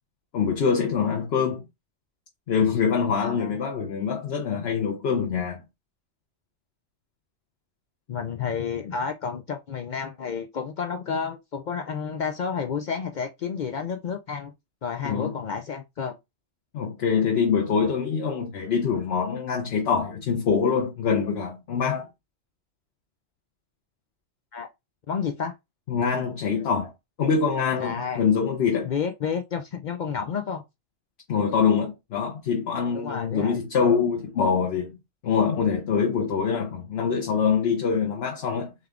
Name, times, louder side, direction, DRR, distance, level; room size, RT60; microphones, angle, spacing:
voice 1, 0.3-1.6 2.5-5.6 15.0-15.4 16.7-22.1 25.9-26.9 27.2-28.9 31.3-35.0 35.2-38.7, left 6 dB, 55° left, 0.9 m, -24 dB
voice 2, 3.2-3.6 8.1-14.5 14.8-16.2 24.5-24.7 25.1-25.5 27.8-28.2 28.8-30.6 32.9-33.6, left 6 dB, 75° left, 0.4 m, -30 dB
3.5 x 3.4 x 3.6 m
omnidirectional pair, 1.4 m